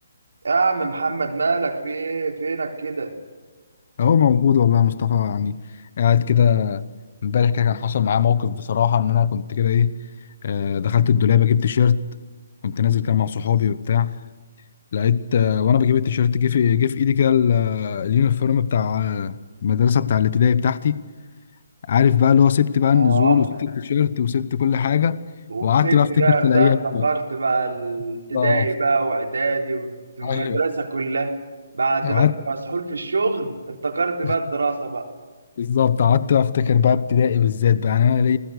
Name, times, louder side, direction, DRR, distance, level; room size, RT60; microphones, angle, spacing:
voice 1, 0.4-3.1 22.9-23.4 25.5-26.7 27.0-31.3 31.7-35.1, right 3 dB, 80° right, 4.0 m, -24 dB
voice 2, 4.0-5.6 6.0-6.8 7.2-10.0 10.4-12.0 12.6-14.2 14.9-21.0 21.9-25.3 25.6-27.0 28.3-28.7 30.2-30.6 32.0-32.3 34.2-34.3 35.6-38.4, left 8 dB, 55° left, 0.9 m, -19 dB
29.0 x 20.5 x 6.6 m
hypercardioid pair, 150°, 0 cm